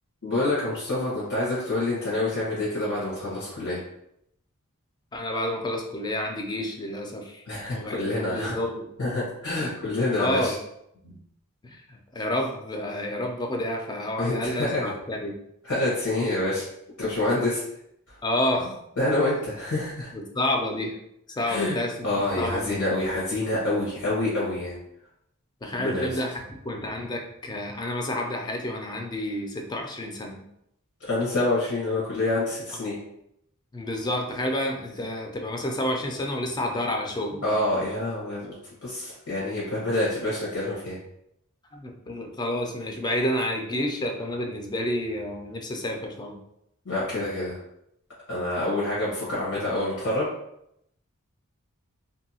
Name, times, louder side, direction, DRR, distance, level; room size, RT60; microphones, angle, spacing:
voice 1, 0.2-3.8 7.5-8.5 9.0-10.5 14.2-14.9 15.6-16.7 17.0-17.6 19.0-20.1 21.4-21.8 22.0-24.8 25.7-26.2 31.0-33.0 37.4-38.5 38.8-41.0 46.8-47.6 48.3-50.3, left 2 dB, 85° left, -7 dB, 1.1 m, -27 dB
voice 2, 5.1-7.4 7.7-8.9 10.2-10.6 11.0-11.2 11.6-15.4 18.2-18.8 19.1-19.2 20.1-21.0 21.4-21.9 22.4-23.0 25.6-30.5 33.7-37.6 41.7-46.4, left 1 dB, 20° left, 2 dB, 0.4 m, -29 dB
2.7 x 2.6 x 2.7 m, 0.78 s
head